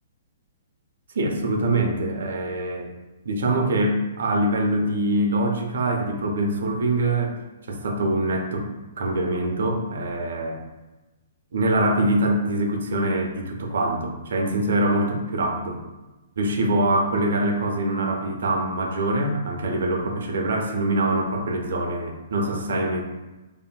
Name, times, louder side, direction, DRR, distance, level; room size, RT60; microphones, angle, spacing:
voice 1, 1.2-2.9 3.3-7.4 7.7-8.7 9.0-10.6 11.5-15.8 16.4-23.0, right 1 dB, 65° right, 3 dB, 0.4 m, -24 dB
2.6 x 2.3 x 2.2 m, 1.1 s
hypercardioid pair, 125°, 0 cm